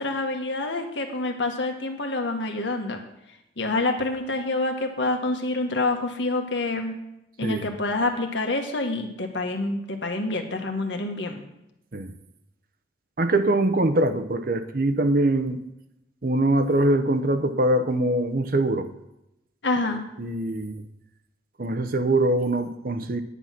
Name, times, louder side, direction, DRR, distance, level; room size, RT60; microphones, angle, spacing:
voice 1, 0.0-3.0 3.6-7.0 7.4-11.4 19.6-20.0, left 2 dB, 80° left, 1.6 m, -27 dB
voice 2, 13.2-15.6 16.2-18.9 20.2-20.8 21.6-23.2, right 1 dB, 50° right, 0.8 m, -23 dB
9.9 x 9.5 x 5.9 m
head